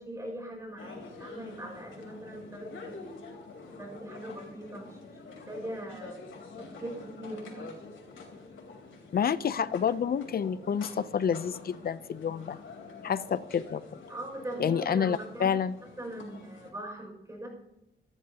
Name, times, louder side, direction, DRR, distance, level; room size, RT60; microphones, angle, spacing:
voice 1, 0.0-2.9 3.8-5.0 5.2-6.2 6.6-7.7 14.1-15.5 16.0-17.5, right 1 dB, 15° right, 1 dB, 6.0 m, -41 dB
sound 1, 0.8-16.7, left 4 dB, 85° left, 3.7 m, -47 dB
voice 2, 9.1-12.6 13.0-13.8 14.6-15.7, left 7 dB, 50° left, 16 dB, 0.5 m, -29 dB
26.5 x 12.5 x 2.9 m, 0.91 s
wide cardioid pair, 155°, 20 cm